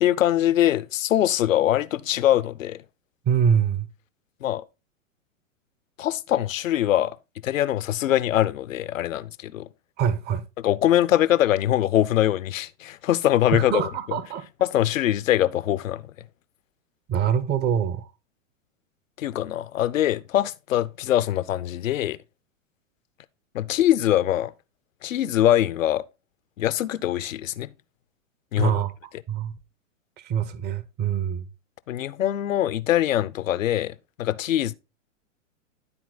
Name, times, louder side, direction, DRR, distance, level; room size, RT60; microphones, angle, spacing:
voice 1, 0.0-2.8 4.4-4.6 6.0-7.1 7.4-9.7 10.6-13.9 14.6-16.0 19.2-22.2 23.5-24.5 25.0-26.0 26.6-27.7 28.5-28.8 31.9-34.7, left 12 dB, 80° left, 0.7 m, -23 dB
voice 2, 3.3-3.9 10.0-10.4 13.5-14.4 17.1-18.1 28.6-28.9 29.3-29.6 30.2-31.5, right 8 dB, 25° right, 0.8 m, -24 dB
11.5 x 4.3 x 3.9 m
hypercardioid pair, 115°, 39 cm